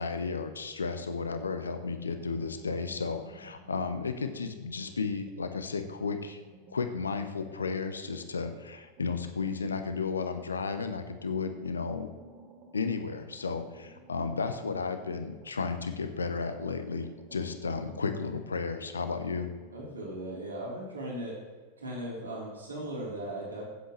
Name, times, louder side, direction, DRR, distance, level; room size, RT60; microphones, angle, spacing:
voice 1, 0.0-6.4 6.7-12.1 12.7-19.5, left 4 dB, 75° left, 9 dB, 0.9 m, -33 dB
sound 1, 2.1-4.6 4.9-10.5 11.0-16.0 16.4-19.7, right 2 dB, 35° right, 2.1 m, -55 dB
voice 2, 19.7-21.4 21.8-23.6, right 1 dB, 75° right, -4 dB, 3.6 m, -37 dB
16.0 x 7.9 x 3.2 m, 1.5 s
figure-of-eight pair, 90°, 0 cm